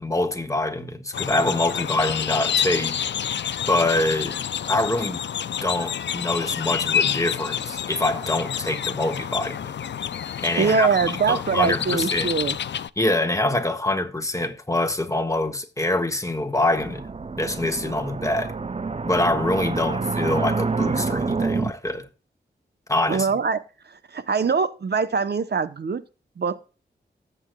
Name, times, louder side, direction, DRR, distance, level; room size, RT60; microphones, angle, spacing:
voice 1, 0.0-3.0 3.7-4.4 4.7-5.2 5.6-9.7 10.4-10.9 11.3-12.3 13.0-17.0 17.4-18.5 19.0-22.1 22.9-23.3, left 2 dB, 15° left, 1.5 m, -25 dB
sound 1, 1.1-12.9, left 8 dB, 80° left, 0.5 m, -28 dB
voice 2, 10.6-12.6 23.1-23.6 23.9-26.0 26.4-26.6, right 5 dB, 65° right, 0.9 m, -23 dB
sound 2, 16.8-21.7, right 4 dB, 35° right, 0.6 m, -27 dB
18.5 x 8.0 x 2.3 m
wide cardioid pair, 65°, 18 cm